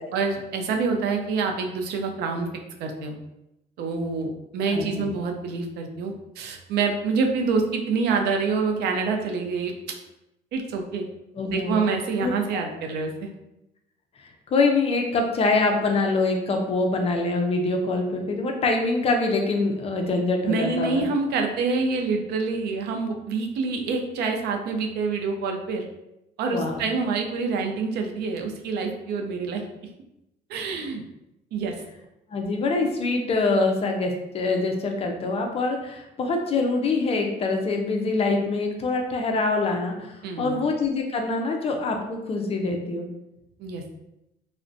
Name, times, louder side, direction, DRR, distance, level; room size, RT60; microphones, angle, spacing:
voice 1, 0.1-2.5 2.8-3.2 3.8-10.0 10.5-11.0 11.5-13.3 20.5-25.9 26.4-29.6 30.5-31.0 31.5-31.7 40.2-40.6 43.6-43.8, right 4 dB, 75° right, 3 dB, 0.4 m, -26 dB
voice 2, 4.7-5.1 11.4-11.8 12.2-12.3 14.5-21.0 26.5-26.9 32.3-43.1, left 3 dB, 35° left, 2 dB, 0.4 m, -24 dB
2.4 x 2.1 x 2.5 m, 0.88 s
cardioid pair, 110°, 17 cm